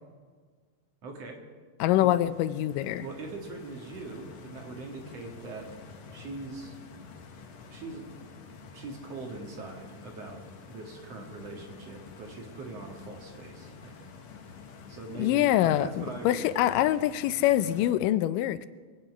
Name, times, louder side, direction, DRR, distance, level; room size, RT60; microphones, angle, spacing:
voice 1, 1.0-1.4 2.0-2.1 3.0-5.7 6.1-6.8 7.7-8.1 8.7-10.4 10.7-14.1 14.9-16.5, right 3 dB, 55° right, 1 dB, 2.6 m, -42 dB
voice 2, 1.8-3.0 15.2-18.7, left 13 dB, 85° left, 14 dB, 2.2 m, -25 dB
Stream, 1.9-17.9, left 4 dB, 60° left, 2.2 m, -49 dB
22.5 x 9.0 x 6.1 m, 1.5 s
omnidirectional pair, 3.8 m